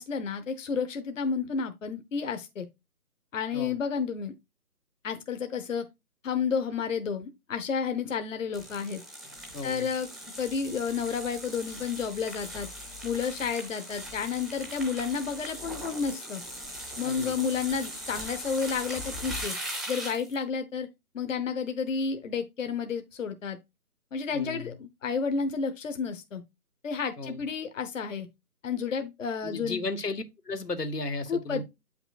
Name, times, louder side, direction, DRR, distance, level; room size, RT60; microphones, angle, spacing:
voice 1, 0.0-2.7 3.3-4.3 5.0-5.8 6.2-9.0 9.6-10.1 10.4-12.7 13.0-16.4 17.0-19.5 19.9-20.9 21.1-23.6 24.1-26.4 26.8-28.3 28.6-29.9 31.3-31.6, left 6 dB, 55° left, 1.0 m, -31 dB
sound 1, 8.5-20.4, equal, ahead, 0.5 m, -40 dB
voice 2, 9.5-9.9 17.0-17.3 24.3-24.7 27.2-27.5 29.4-31.6, left 3 dB, 90° left, 1.6 m, -34 dB
8.5 x 5.8 x 2.4 m
figure-of-eight pair, 155°, 46 cm